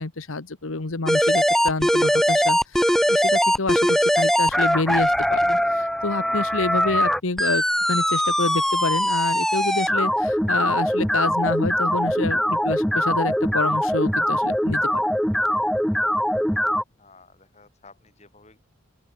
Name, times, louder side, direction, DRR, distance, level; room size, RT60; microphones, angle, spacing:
voice 1, 0.0-15.0, left 3 dB, 80° left, 1.3 m, -28 dB
sound 1, 1.1-16.8, equal, ahead, 1.7 m, -21 dB
voice 2, 17.0-18.6, left 3 dB, 35° left, 5.5 m, -52 dB
open air
head